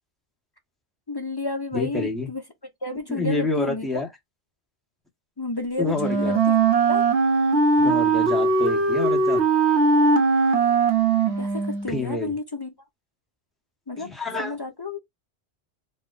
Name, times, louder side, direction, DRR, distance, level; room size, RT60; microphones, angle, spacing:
voice 1, 1.1-2.4 2.8-4.0 5.4-6.6 6.9-7.0 11.4-12.7 13.9-14.1 14.4-15.0, left 3 dB, 35° left, 0.4 m, -31 dB
voice 2, 1.7-2.3 3.1-4.1 5.8-6.4 7.8-9.4 11.9-12.3 14.0-14.6, left 2 dB, ahead, 0.9 m, -28 dB
Wind instrument woodwind instrument, 6.0-11.9, right 3 dB, 70° right, 1.1 m, -20 dB
4.3 x 2.1 x 2.4 m
omnidirectional pair, 1.2 m